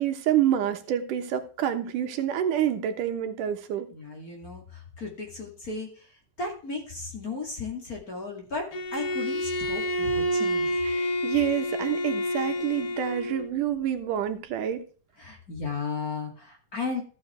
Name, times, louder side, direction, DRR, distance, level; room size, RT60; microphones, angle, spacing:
voice 1, 0.0-3.9 10.9-14.8, right 10 dB, 85° right, 8 dB, 2.7 m, -27 dB
voice 2, 3.9-10.8 15.2-17.0, left 4 dB, 30° left, 1 dB, 2.6 m, -35 dB
Bowed string instrument, 8.7-13.5, equal, 60° left, 1.0 m, -28 dB
14.5 x 7.7 x 3.4 m, 0.39 s
omnidirectional pair, 3.6 m